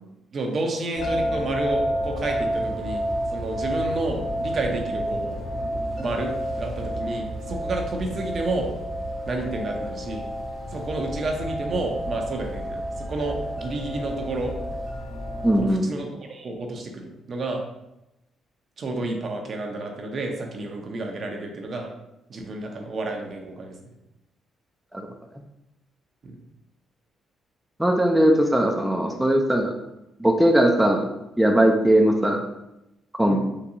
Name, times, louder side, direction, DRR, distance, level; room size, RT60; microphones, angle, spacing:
voice 1, 0.3-5.4 6.0-8.8 9.3-10.3 10.7-12.8 13.1-14.5 15.6-17.7 18.8-21.9 22.3-23.8 26.2-26.4 33.2-33.4, right 2 dB, 50° right, 2 dB, 0.6 m, -30 dB
sound 1, 0.9-15.6, equal, 60° left, 1.1 m, -30 dB
voice 2, 15.4-15.9 24.9-25.1 27.8-29.7 30.2-31.1 31.4-32.4 33.2-33.4, right 1 dB, 5° right, 2 dB, 0.4 m, -19 dB
3.8 x 2.3 x 2.8 m, 0.90 s
cardioid pair, 90°, 0 cm